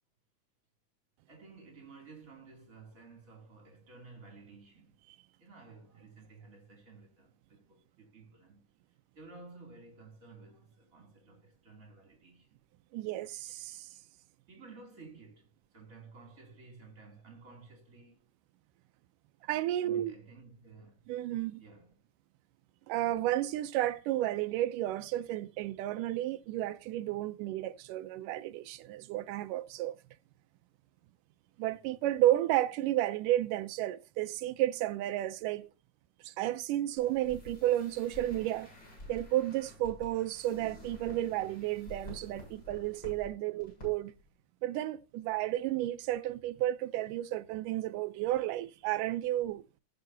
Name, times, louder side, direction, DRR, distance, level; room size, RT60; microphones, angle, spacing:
voice 1, 1.3-5.0 5.4-8.7 9.1-12.6 14.5-18.3 19.8-21.1 21.6-22.0 25.6-26.2 36.9-37.0, right 4 dB, 25° right, 2.9 m, -54 dB
voice 2, 12.9-13.9 19.5-20.1 21.1-21.6 22.9-30.0 31.6-35.7 36.2-38.7 39.1-44.1 44.6-49.6, right 14 dB, 90° right, 2.3 m, -32 dB
sound 1, 37.0-43.3 43.6-43.9 44.1-44.3, left 1 dB, 30° left, 8.1 m, -49 dB
19.0 x 6.6 x 2.7 m
omnidirectional pair, 3.6 m